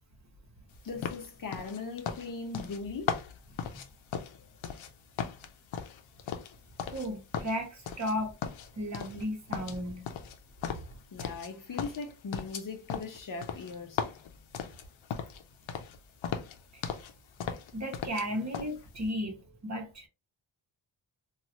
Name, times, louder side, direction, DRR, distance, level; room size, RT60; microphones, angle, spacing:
voice 1, 0.8-3.2 4.4-4.5 11.1-14.1 18.3-18.4, left 4 dB, 45° left, 0.6 m, -39 dB
sound 1, 1.0-4.9 5.2-7.1 7.3-8.1 8.4-9.3 9.5-11.5 11.8-15.4 15.7-16.0 16.2-17.1 17.4-18.3 18.5-18.7, left 7 dB, 90° left, 0.6 m, -37 dB
voice 2, 6.9-8.3 8.7-10.1 10.7-10.8 16.7-16.8 17.7-20.1, equal, 35° right, 1.0 m, -35 dB
3.0 x 2.4 x 2.7 m
wide cardioid pair, 110°, 47 cm